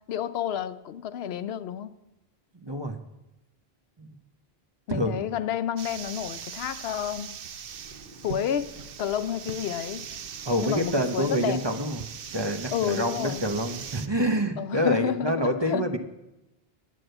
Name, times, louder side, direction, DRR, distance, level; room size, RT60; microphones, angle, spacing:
voice 1, 0.1-1.9 4.9-7.3 8.2-8.7 9.0-10.1 10.6-11.6 12.7-13.5 14.6-15.9, left 9 dB, 80° left, 0.8 m, -30 dB
voice 2, 2.5-3.0 4.0-4.1 4.9-5.3 10.4-12.0 12.3-16.0, equal, 30° right, 0.8 m, -27 dB
sound 1, 5.8-14.1, right 7 dB, 65° right, 0.8 m, -40 dB
sound 2, 7.7-14.3, right 1 dB, 50° right, 3.6 m, -52 dB
9.5 x 8.4 x 7.9 m
omnidirectional pair, 1.0 m